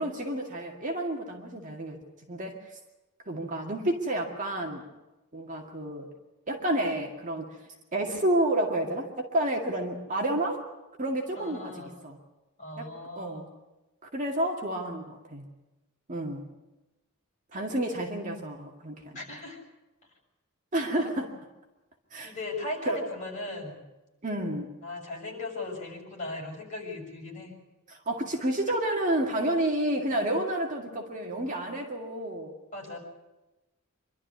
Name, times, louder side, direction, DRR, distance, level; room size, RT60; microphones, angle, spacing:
voice 1, 0.0-2.0 2.3-2.8 3.3-4.9 5.3-6.1 6.5-7.6 7.9-10.6 11.0-12.2 12.8-12.9 13.2-13.5 14.1-15.5 16.1-16.4 17.5-19.2 20.7-21.3 22.1-22.3 22.9-23.0 24.2-24.7 27.9-32.6, right 1 dB, 35° right, 1 dB, 2.1 m, -30 dB
voice 2, 11.4-12.0 12.6-13.5 19.1-19.6 22.2-23.8 24.8-27.5 28.9-29.0 32.7-33.0, left 2 dB, 35° left, -2 dB, 6.4 m, -37 dB
25.0 x 12.5 x 9.6 m, 1.1 s
head